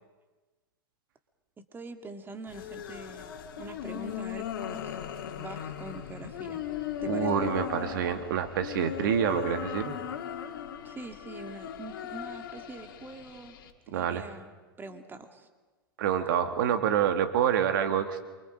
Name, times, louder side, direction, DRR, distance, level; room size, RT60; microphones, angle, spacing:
voice 1, 1.6-3.3 3.6-5.0 5.4-6.6 7.0-7.5 10.8-13.6 13.9-14.5 14.8-15.5, right 3 dB, 15° right, 6 dB, 2.3 m, -44 dB
sound 1, 2.5-13.7, left 9 dB, 70° left, 2.6 m, -37 dB
voice 2, 7.1-9.9 13.9-14.2 16.0-18.2, right 9 dB, 65° right, 8 dB, 1.9 m, -27 dB
28.0 x 25.0 x 5.2 m, 1.3 s
hypercardioid pair, 100°, 12 cm